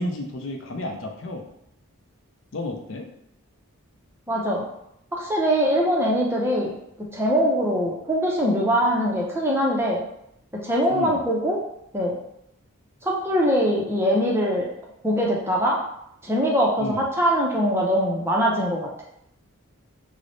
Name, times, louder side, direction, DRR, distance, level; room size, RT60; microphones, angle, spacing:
voice 1, 0.0-1.5 2.5-3.1 10.9-11.2 16.8-17.0, left 1 dB, 60° left, 2 dB, 0.5 m, -31 dB
voice 2, 4.3-4.7 5.1-6.7 7.1-10.0 10.5-11.6 11.9-12.2 13.0-14.7 15.0-15.8 16.2-18.9, equal, 10° right, -3 dB, 0.5 m, -22 dB
3.2 x 2.0 x 3.9 m, 0.77 s
head